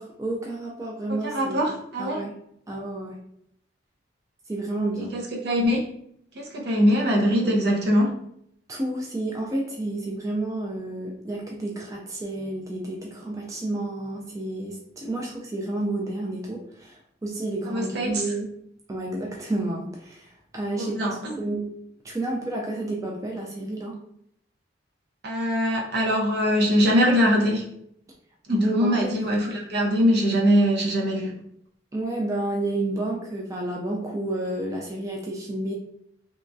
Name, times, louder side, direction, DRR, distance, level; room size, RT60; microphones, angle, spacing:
voice 1, 0.0-2.4 2.7-3.2 4.5-5.1 8.7-17.0 17.2-18.5 18.9-21.0 21.4-21.7 22.0-24.0 28.5-29.1 29.4-29.5 31.9-35.7, right 2 dB, 15° right, -2 dB, 0.3 m, -30 dB
voice 2, 1.2-2.2 5.0-5.9 6.3-8.2 17.7-18.2 20.8-21.4 25.2-27.6 28.5-31.3, equal, 60° right, -1 dB, 0.6 m, -22 dB
2.9 x 2.3 x 2.5 m, 0.70 s
head